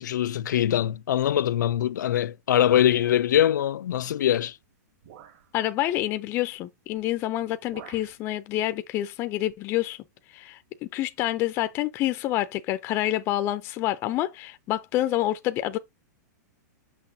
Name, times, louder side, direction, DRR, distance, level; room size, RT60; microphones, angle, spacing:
voice 1, 0.0-4.5, left 11 dB, 80° left, 0.5 m, -23 dB
sound 1, 2.7-3.5 4.4-4.5 5.0-5.5 6.9-7.1 7.4-8.2, right 9 dB, 50° right, 2.4 m, -48 dB
voice 2, 5.5-10.0 10.3-15.8, left 14 dB, 25° left, 0.5 m, -28 dB
6.4 x 6.0 x 2.7 m
hypercardioid pair, 160°, 10 cm